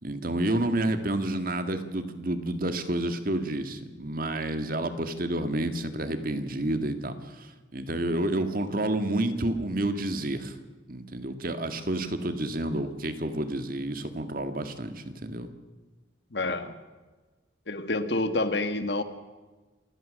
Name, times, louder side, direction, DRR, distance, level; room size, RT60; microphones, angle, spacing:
voice 1, 0.0-10.6 10.9-15.5, right 1 dB, 50° right, 8 dB, 1.8 m, -30 dB
voice 2, 16.3-16.7 17.7-19.0, left 2 dB, 60° left, 9 dB, 1.6 m, -28 dB
28.0 x 17.0 x 6.4 m, 1.3 s
head